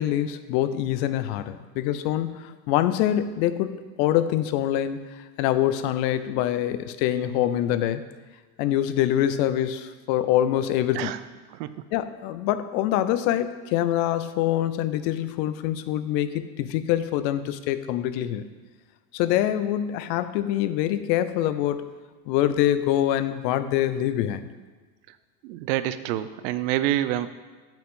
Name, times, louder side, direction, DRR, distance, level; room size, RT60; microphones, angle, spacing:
voice 1, 0.0-8.0 8.6-11.2 11.9-18.5 19.1-21.8 22.3-24.5, left 12 dB, 80° left, 12 dB, 0.7 m, -25 dB
voice 2, 25.4-27.3, right 13 dB, 85° right, 13 dB, 0.6 m, -27 dB
8.0 x 7.3 x 3.7 m, 1.4 s
supercardioid pair, 90°, 50 cm